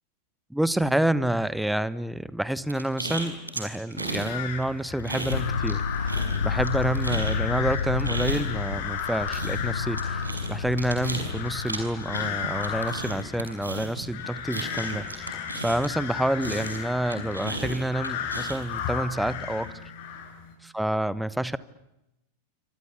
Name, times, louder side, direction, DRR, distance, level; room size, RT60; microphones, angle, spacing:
voice 1, 0.5-19.7 20.7-21.6, right 1 dB, ahead, 17 dB, 1.2 m, -28 dB
sound 1, 2.7-4.3 4.6-5.8 6.1-16.1 16.4-18.8, right 2 dB, 80° right, 5.8 m, -35 dB
sound 2, 4.3-20.5, left 7 dB, 50° left, 6.9 m, -35 dB
sound 3, 5.3-13.2, left 5 dB, 70° left, 1.0 m, -31 dB
28.5 x 25.0 x 8.3 m, 0.91 s
figure-of-eight pair, 90°, 0 cm